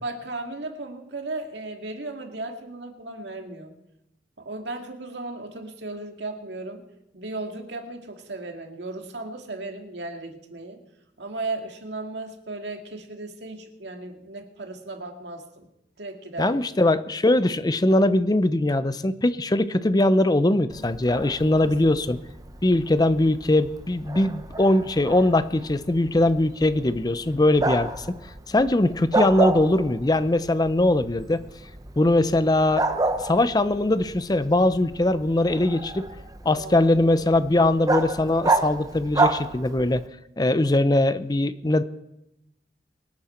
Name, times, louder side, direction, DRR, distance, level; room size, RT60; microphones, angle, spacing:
voice 1, 0.0-3.7 4.4-6.8 7.1-10.8 11.2-15.7 16.0-16.8 21.5-21.9 36.5-37.1, right 2 dB, 80° right, 4 dB, 2.0 m, -36 dB
voice 2, 16.4-22.2 22.6-28.2 28.5-31.4 32.0-32.8 33.2-36.1 36.4-40.0 40.4-41.8, left 1 dB, 20° left, 14 dB, 0.5 m, -21 dB
Bark, 20.7-40.1, right 2 dB, 20° right, 0.8 m, -31 dB
24.5 x 8.9 x 4.3 m, 0.86 s
head